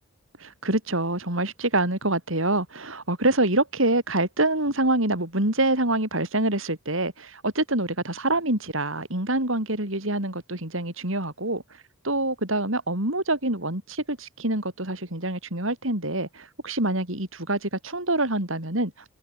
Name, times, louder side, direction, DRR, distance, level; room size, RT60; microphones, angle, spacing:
voice 1, 0.4-11.6 12.0-18.9, right 2 dB, 60° right, 5.2 m, -26 dB
head